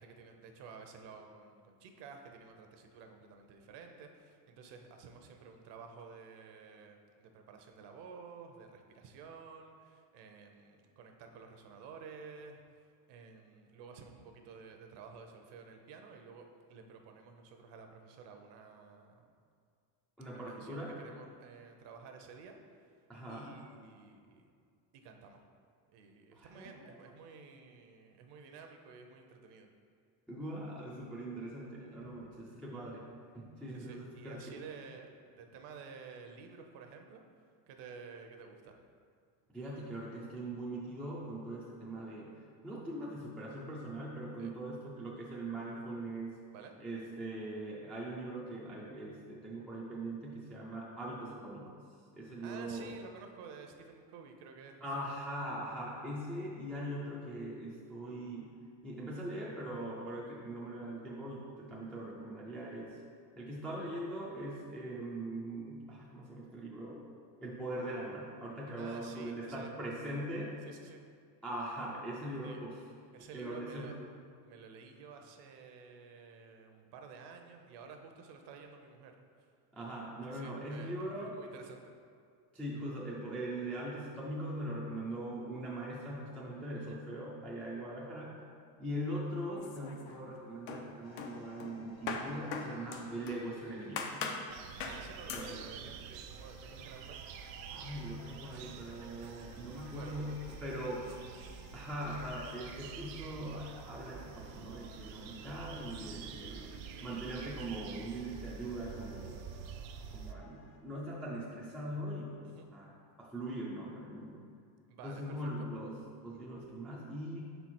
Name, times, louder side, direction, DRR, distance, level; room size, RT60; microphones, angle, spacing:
voice 1, 0.0-19.2 20.3-24.5 24.9-25.4 25.9-29.7 31.8-32.0 33.7-37.2 37.7-38.8 44.4-44.6 46.5-46.8 52.4-55.0 68.8-69.7 70.6-71.0 72.4-72.6 73.1-74.0 74.4-79.5 80.2-81.9 86.8-87.0 94.8-97.2 99.9-101.1 112.4-112.7 114.9-115.7, right 5 dB, 55° right, 4 dB, 0.8 m, -52 dB
voice 2, 20.2-21.0 23.1-23.5 26.3-26.9 30.3-33.0 33.3-34.6 39.5-42.3 42.6-46.4 46.8-51.7 52.2-52.9 54.8-58.5 58.8-63.0 63.4-67.0 67.4-70.6 71.4-72.8 73.3-73.9 79.7-81.4 82.5-88.4 88.8-94.1 95.3-95.6 97.7-101.1 101.7-106.7 107.0-109.7 110.1-114.4 115.0-117.4, right 1 dB, 5° left, -6 dB, 0.3 m, -41 dB
sound 1, 89.6-90.3 90.7-93.5 94.0-94.5 94.8-95.0 95.3-95.5, left 5 dB, 90° left, 0.9 m, -40 dB
sound 2, 91.0-110.8, left 2 dB, 65° left, 1.4 m, -58 dB
sound 3, 94.5-110.3, right 8 dB, 85° right, 0.6 m, -48 dB
5.7 x 4.5 x 4.3 m, 2.2 s
cardioid pair, 145°, 50 cm